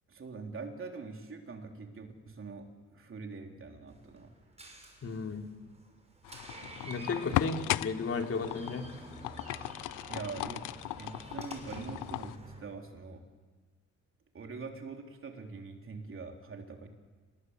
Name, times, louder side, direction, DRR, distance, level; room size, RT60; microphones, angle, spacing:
voice 1, 0.1-2.7 2.9-4.3 7.4-7.6 10.1-10.6 11.0-13.2 14.3-16.9, right 4 dB, 45° right, 3 dB, 3.7 m, -43 dB
Door, 3.9-12.6, right 1 dB, 20° right, 5.9 m, -50 dB
voice 2, 5.0-5.4 6.8-8.8, left 4 dB, 50° left, 3 dB, 3.4 m, -34 dB
sound 1, 6.2-12.4, left 16 dB, 85° left, 0.6 m, -37 dB
28.0 x 19.5 x 8.3 m, 1.4 s
cardioid pair, 90°, 30 cm